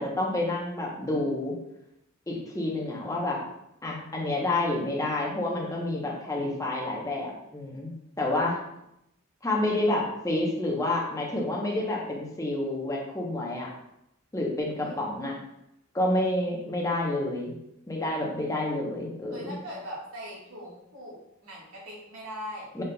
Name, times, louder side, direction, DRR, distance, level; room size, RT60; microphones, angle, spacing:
voice 1, 0.0-1.6 2.3-3.4 3.8-7.9 8.2-8.6 9.4-13.7 14.3-15.4 15.9-17.5 17.9-19.4 22.7-22.8, left 1 dB, 15° left, -2 dB, 0.8 m, -29 dB
voice 2, 14.8-15.2 19.3-22.7, equal, 85° right, -5 dB, 1.6 m, -41 dB
5.2 x 3.6 x 2.2 m, 0.82 s
head